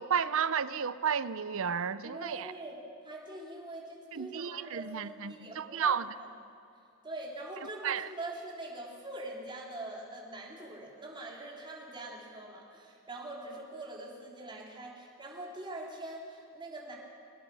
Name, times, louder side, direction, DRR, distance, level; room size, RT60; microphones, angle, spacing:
voice 1, 0.0-2.5 4.1-6.1 7.8-8.1, right 7 dB, 65° right, 16 dB, 0.6 m, -32 dB
voice 2, 2.0-2.8 3.0-6.3 7.0-16.9, right 1 dB, 20° right, -3 dB, 3.5 m, -43 dB
24.0 x 19.0 x 6.2 m, 2.5 s
head